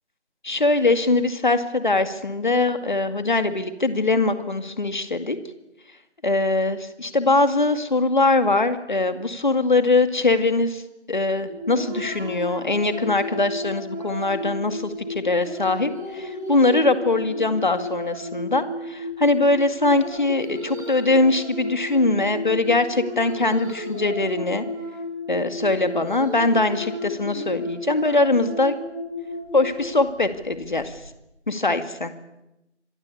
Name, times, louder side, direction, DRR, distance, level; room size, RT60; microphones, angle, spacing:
voice 1, 0.4-5.4 6.2-10.8 11.1-24.6 25.3-28.7 29.5-30.9 31.5-32.1, left 2 dB, 40° left, 10 dB, 2.2 m, -22 dB
sound 1, 11.5-31.0, left 1 dB, 15° right, 6.1 m, -33 dB
26.5 x 20.0 x 8.4 m, 0.90 s
figure-of-eight pair, 175°, 35 cm